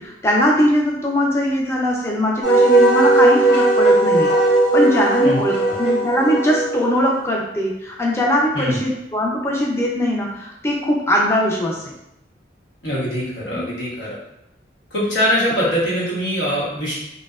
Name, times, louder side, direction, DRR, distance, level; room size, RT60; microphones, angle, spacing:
voice 1, 0.0-4.3 4.7-11.9, left 1 dB, 15° left, -2 dB, 0.4 m, -20 dB
Wind instrument woodwind instrument, 2.4-7.2, right 2 dB, 65° left, 0.8 m, -17 dB
voice 2, 12.8-14.2 14.9-16.9, equal, 90° left, -7 dB, 1.0 m, -22 dB
2.6 x 2.1 x 2.3 m, 0.84 s
head